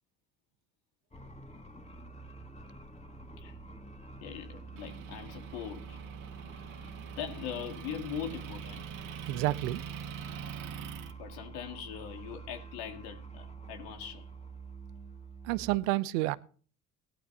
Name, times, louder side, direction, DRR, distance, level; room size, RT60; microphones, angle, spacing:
sound 1, 1.1-15.8, right 4 dB, 15° left, 2.2 m, -47 dB
voice 1, 4.2-6.0 6.8-8.8 11.2-14.3, left 9 dB, 80° left, 2.4 m, -41 dB
Motor vehicle (road) / Engine, 4.8-11.1, right 8 dB, 55° right, 2.1 m, -44 dB
voice 2, 9.2-9.8 15.4-16.4, right 17 dB, 80° right, 0.9 m, -29 dB
18.0 x 11.5 x 2.9 m
hypercardioid pair, 70°, 38 cm